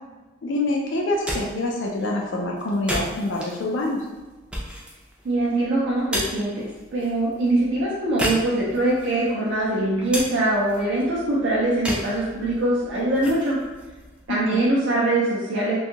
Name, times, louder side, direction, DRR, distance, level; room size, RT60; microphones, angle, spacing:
voice 1, 0.4-4.1 14.3-14.7, left 2 dB, 65° left, -1 dB, 0.4 m, -26 dB
sound 1, 1.0-14.9, equal, 5° right, 0.4 m, -35 dB
voice 2, 5.2-6.7 6.9-13.6 14.3-15.8, right 1 dB, 60° right, -6 dB, 0.5 m, -23 dB
2.6 x 2.3 x 2.8 m, 1.2 s
head